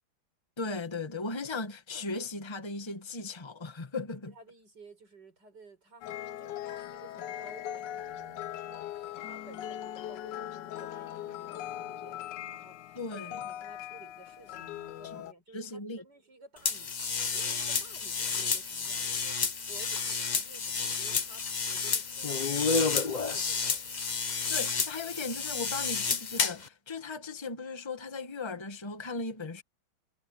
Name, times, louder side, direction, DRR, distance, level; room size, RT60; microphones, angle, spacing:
voice 1, 0.6-4.3 12.9-13.4 15.2-15.3 15.5-16.0 24.5-29.6, left 3 dB, 15° left, 1.5 m, -37 dB
voice 2, 4.1-23.7, right 3 dB, 55° right, 6.9 m, -55 dB
sound 1, 6.0-15.3, left 11 dB, 70° left, 1.3 m, -40 dB
sound 2, 16.6-26.7, left 5 dB, 40° left, 0.6 m, -30 dB
omnidirectional pair, 2.2 m